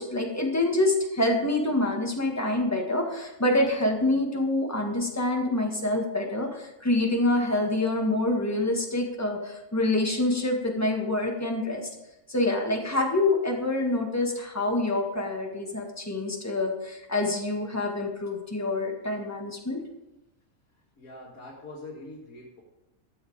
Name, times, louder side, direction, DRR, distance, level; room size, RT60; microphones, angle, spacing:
voice 1, 0.0-11.9 12.3-19.8, left 2 dB, 10° left, 1 dB, 1.7 m, -26 dB
voice 2, 21.0-22.6, left 2 dB, 80° left, -3 dB, 2.2 m, -43 dB
12.5 x 7.6 x 5.0 m, 0.93 s
omnidirectional pair, 1.5 m